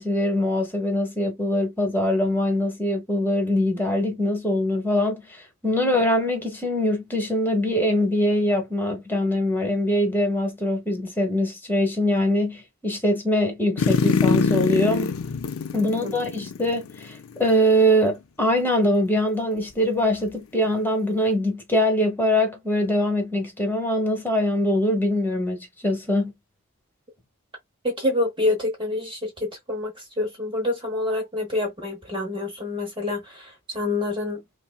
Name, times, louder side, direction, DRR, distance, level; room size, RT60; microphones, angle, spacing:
voice 1, 0.0-5.2 5.6-15.1 15.7-26.3, left 1 dB, 10° left, 1.3 m, -23 dB
sound 1, 13.8-17.2 17.5-17.6, left 4 dB, 70° left, 0.5 m, -23 dB
voice 2, 27.8-34.4, left 2 dB, 25° right, 0.9 m, -27 dB
5.5 x 2.2 x 2.3 m
head